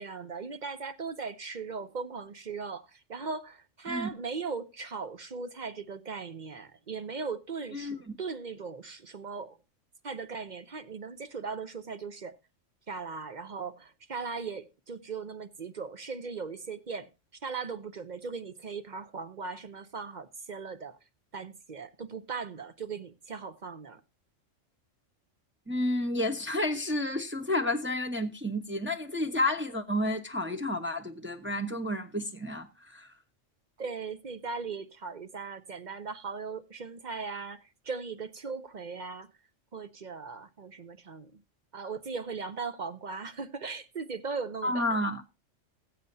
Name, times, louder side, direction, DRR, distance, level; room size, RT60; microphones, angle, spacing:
voice 1, 0.0-9.6 10.0-12.4 12.9-17.1 17.4-21.0 21.3-24.0 33.8-39.3 39.7-41.4 41.7-45.0, right 5 dB, 45° right, 0.7 m, -38 dB
voice 2, 25.7-33.1 44.6-45.2, left 1 dB, 10° right, 0.9 m, -31 dB
20.0 x 7.7 x 2.7 m
omnidirectional pair, 1.3 m